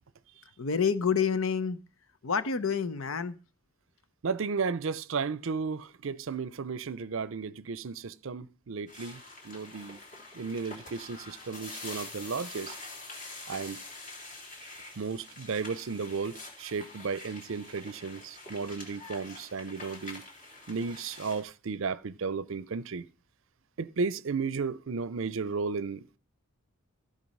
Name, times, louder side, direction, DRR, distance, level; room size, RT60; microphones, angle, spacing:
voice 1, 0.6-1.8 2.2-3.4, left 6 dB, 70° left, 0.8 m, -28 dB
voice 2, 4.2-9.2 9.4-10.0 10.3-12.8 13.5-13.8 15.0-20.2 20.7-23.1 23.8-26.2, right 5 dB, 65° right, 0.5 m, -34 dB
sound 1, 8.9-21.4, left 2 dB, 35° left, 3.0 m, -46 dB
15.0 x 5.3 x 5.4 m
head